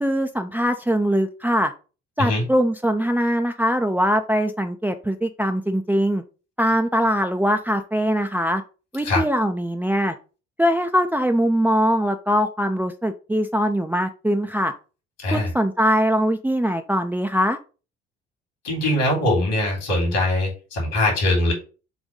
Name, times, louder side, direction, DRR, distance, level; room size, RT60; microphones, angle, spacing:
voice 1, 0.0-1.7 2.2-6.2 6.6-8.6 8.9-10.1 10.6-14.7 15.3-17.6, equal, 5° right, 5 dB, 0.6 m, -22 dB
voice 2, 18.6-21.5, left 1 dB, 65° left, 1 dB, 3.6 m, -21 dB
7.4 x 2.6 x 5.3 m, 0.34 s
figure-of-eight pair, 50°, 33 cm